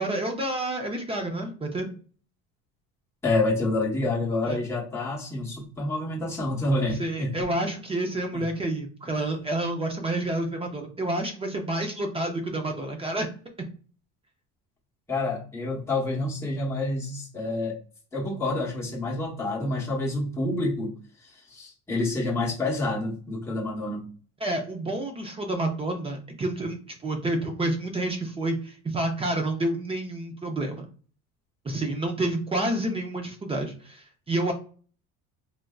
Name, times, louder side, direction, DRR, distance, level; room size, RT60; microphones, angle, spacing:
voice 1, 0.0-2.0 4.5-4.6 7.0-13.3 24.4-30.9 31.6-34.5, right 1 dB, 20° right, 4 dB, 0.5 m, -29 dB
voice 2, 3.2-7.4 8.3-8.4 15.1-17.8 18.1-20.9 21.2-24.1, left 2 dB, 10° left, -4 dB, 1.0 m, -28 dB
3.2 x 2.5 x 2.3 m, 0.41 s
cardioid pair, 140°, 32 cm